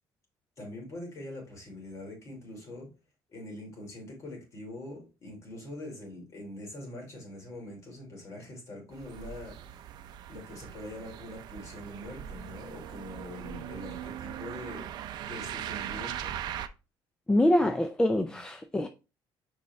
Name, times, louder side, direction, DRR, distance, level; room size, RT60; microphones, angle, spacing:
voice 1, 0.6-2.9 3.3-9.6 10.3-14.9 15.2-16.4 17.6-17.7 18.3-18.4, left 1 dB, 35° left, 3.1 m, -43 dB
sound 1, 8.9-16.7, right 10 dB, 55° right, 0.6 m, -40 dB
voice 2, 17.3-18.9, left 1 dB, 10° left, 0.4 m, -25 dB
6.6 x 4.8 x 3.2 m
cardioid pair, 145°, 9 cm